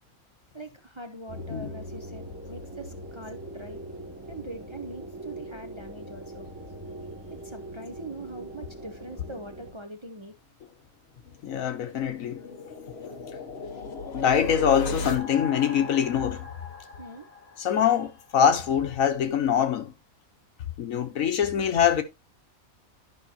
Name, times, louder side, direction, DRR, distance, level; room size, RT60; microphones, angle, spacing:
voice 1, 0.5-3.8 4.3-6.5 7.3-10.3 17.0-17.3, right 2 dB, 25° right, 0.7 m, -42 dB
sound 1, 1.3-9.7, right 1 dB, 10° right, 3.3 m, -41 dB
sound 2, 11.2-18.0, left 3 dB, 50° left, 1.4 m, -37 dB
voice 2, 11.4-12.4 13.8-16.5 17.6-19.9 20.8-22.0, left 8 dB, 80° left, 1.4 m, -24 dB
11.5 x 5.7 x 2.8 m
omnidirectional pair, 1.4 m